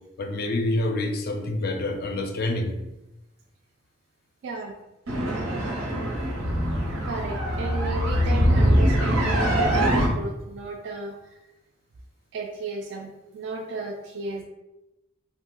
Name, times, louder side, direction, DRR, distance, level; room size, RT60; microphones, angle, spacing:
voice 1, 0.2-2.7, left 1 dB, 50° left, 5 dB, 0.4 m, -27 dB
voice 2, 4.4-4.7 7.0-11.2 12.3-14.4, right 3 dB, 60° right, 1 dB, 0.3 m, -34 dB
sound 1, 5.1-10.1, equal, 85° right, 0.7 m, -23 dB
2.5 x 2.1 x 3.7 m, 0.96 s
head